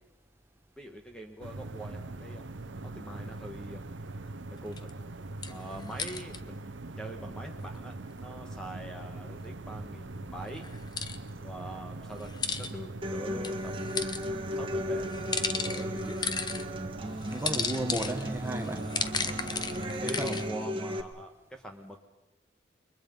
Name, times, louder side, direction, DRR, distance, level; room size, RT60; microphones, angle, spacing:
voice 1, 0.8-2.4 2.9-3.8 4.6-4.9 5.5-7.9 8.2-10.6 11.4-14.1 14.6-15.0 15.6-16.3 20.0-22.0, right 1 dB, 5° left, 1.4 m, -43 dB
sound 1, 1.4-20.5, right 2 dB, 90° right, 0.9 m, -42 dB
sound 2, 4.7-4.9 5.4-6.4 10.6-11.2 12.2-12.7 13.4-14.3 15.1-16.6 17.2-20.4, left 5 dB, 20° left, 0.9 m, -34 dB
Human voice / Acoustic guitar, 13.0-21.0, equal, 30° right, 1.6 m, -36 dB
voice 2, 17.3-18.9 20.0-20.5, right 1 dB, 15° right, 1.6 m, -34 dB
29.0 x 22.5 x 5.4 m
head